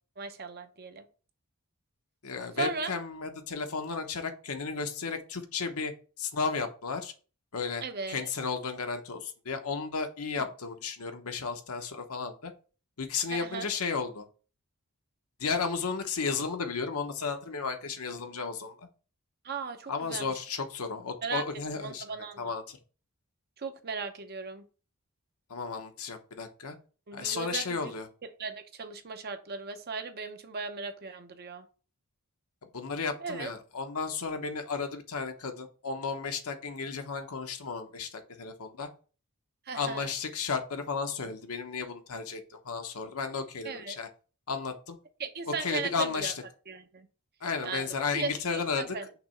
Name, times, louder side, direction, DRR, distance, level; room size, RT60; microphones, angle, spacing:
voice 1, 0.2-1.0 2.6-2.9 7.8-8.3 13.3-13.7 19.4-20.3 21.2-21.4 21.7-22.5 23.6-24.6 27.1-27.9 28.4-31.6 33.2-33.5 39.7-40.1 43.6-44.0 45.2-46.3 46.7-47.1 47.6-49.1, right 4 dB, 45° right, 7 dB, 0.8 m, -37 dB
voice 2, 2.2-5.9 6.2-7.1 7.5-12.5 13.0-14.2 15.4-18.9 19.9-22.0 22.4-22.8 25.5-26.8 27.1-28.1 32.7-38.9 39.7-44.1 44.5-45.0 45.6-46.4 47.4-49.0, left 5 dB, 70° left, 5 dB, 1.0 m, -33 dB
5.9 x 3.1 x 5.6 m, 0.37 s
head